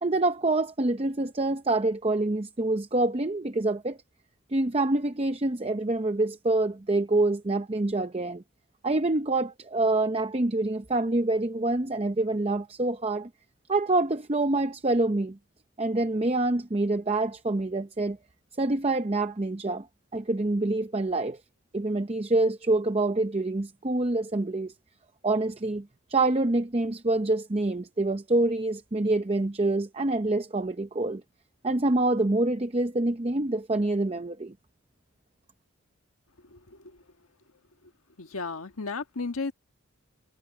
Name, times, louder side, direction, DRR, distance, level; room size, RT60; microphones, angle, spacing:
voice 1, 0.0-4.0 4.5-8.4 8.8-13.3 13.7-15.4 15.8-18.2 18.6-19.9 20.1-21.4 21.7-24.7 25.2-31.2 31.6-34.5, right 2 dB, 30° right, 0.7 m, -26 dB
voice 2, 36.4-37.0 37.8-37.9 38.2-39.5, left 4 dB, 90° left, 1.5 m, -35 dB
head